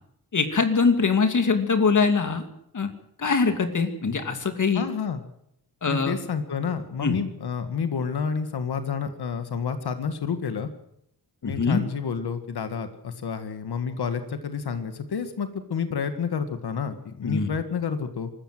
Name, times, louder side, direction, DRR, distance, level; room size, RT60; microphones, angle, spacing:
voice 1, 0.3-2.5 2.7-2.9 3.2-4.8 5.8-6.2 7.0-7.2 11.4-11.8 17.2-17.5, left 4 dB, 50° left, 7 dB, 2.7 m, -23 dB
voice 2, 4.7-5.2 5.9-10.7 11.4-18.3, left 6 dB, 80° left, 9 dB, 2.0 m, -29 dB
24.5 x 14.0 x 7.9 m, 0.73 s
wide cardioid pair, 120°, 38 cm